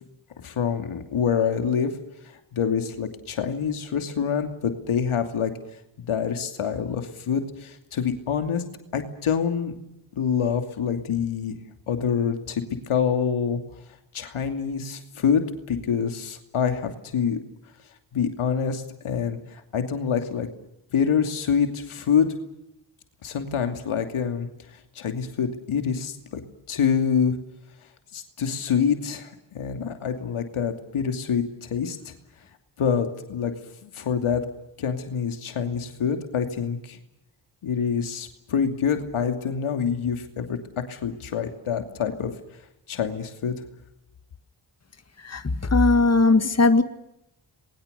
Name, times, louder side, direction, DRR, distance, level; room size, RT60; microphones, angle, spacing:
voice 1, 0.4-1.9 2.3-5.5 6.0-8.6 8.9-9.7 10.2-11.6 11.9-13.6 14.1-15.4 15.7-17.4 18.1-20.5 20.9-22.3 23.2-24.5 24.9-26.4 26.7-27.3 28.1-32.1 32.8-33.5 33.8-34.4 34.8-37.0 37.6-40.6 40.9-42.3 42.9-43.5, left 7 dB, 85° left, 6 dB, 2.7 m, -26 dB
voice 2, 45.2-46.8, left 3 dB, 30° left, 10 dB, 1.9 m, -19 dB
28.0 x 21.5 x 6.8 m, 0.85 s
cardioid pair, 50°, 48 cm